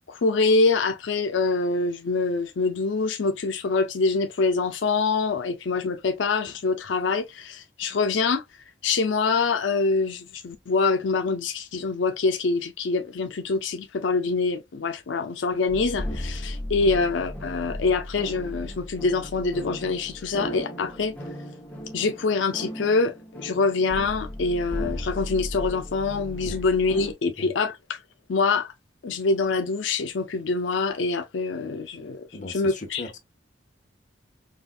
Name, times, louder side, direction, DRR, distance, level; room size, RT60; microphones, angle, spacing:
voice 1, 0.1-8.4 8.8-21.1 21.9-28.0 28.3-28.7 29.0-33.2, left 4 dB, 85° left, 0.5 m, -25 dB
sound 1, 15.7-27.1, equal, 10° left, 1.0 m, -36 dB
voice 2, 32.3-33.1, left 2 dB, 45° left, 1.0 m, -37 dB
4.9 x 2.3 x 2.4 m
head